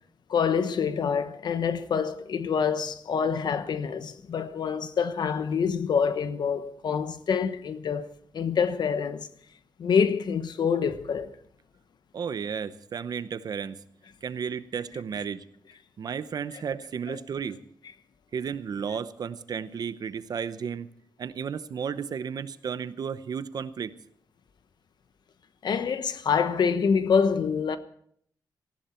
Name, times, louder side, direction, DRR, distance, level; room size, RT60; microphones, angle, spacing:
voice 1, 0.3-9.3 9.8-11.3 17.1-17.2 25.6-27.8, left 6 dB, 65° left, 1.0 m, -26 dB
voice 2, 12.1-13.8 14.2-15.4 16.0-17.6 18.3-20.9 21.2-23.9, right 7 dB, 55° right, 0.8 m, -33 dB
18.5 x 15.0 x 4.4 m
wide cardioid pair, 140°, 8 cm